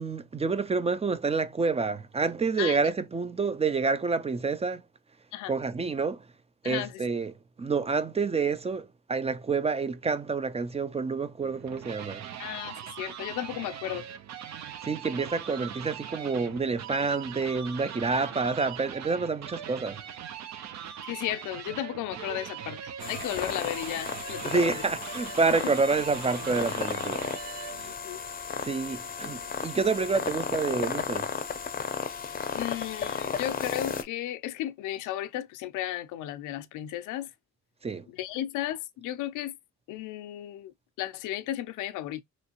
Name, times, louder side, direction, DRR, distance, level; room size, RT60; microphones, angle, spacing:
voice 1, 0.0-4.8 5.5-6.3 6.6-7.3 7.6-12.2 14.8-20.0 24.4-27.2 27.6-27.9 28.6-31.3 37.8-38.1, right 4 dB, 20° right, 0.4 m, -28 dB
voice 2, 6.6-7.1 12.4-14.1 21.0-24.8 25.6-25.7 28.0-28.2 32.5-37.3 38.1-39.6 39.9-42.2, left 13 dB, 85° left, 0.5 m, -34 dB
sound 1, 11.4-27.9, right 9 dB, 65° right, 0.6 m, -41 dB
sound 2, 23.0-34.0, left 6 dB, 30° left, 0.6 m, -34 dB
3.1 x 2.8 x 2.8 m
cardioid pair, 90°, 30 cm